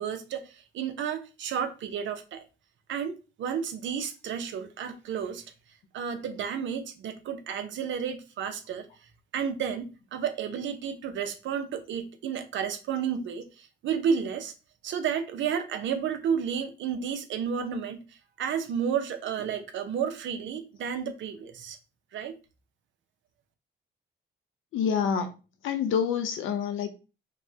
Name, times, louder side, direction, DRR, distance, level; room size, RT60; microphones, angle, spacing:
voice 1, 0.0-2.5 2.9-5.4 5.9-8.9 9.3-14.5 14.8-18.0 18.4-21.8 22.1-22.3, right 7 dB, 70° right, 0.7 m, -31 dB
voice 2, 24.7-25.3 25.6-27.0, left 7 dB, 80° left, 0.8 m, -27 dB
5.1 x 2.2 x 2.7 m
cardioid pair, 90°, 20 cm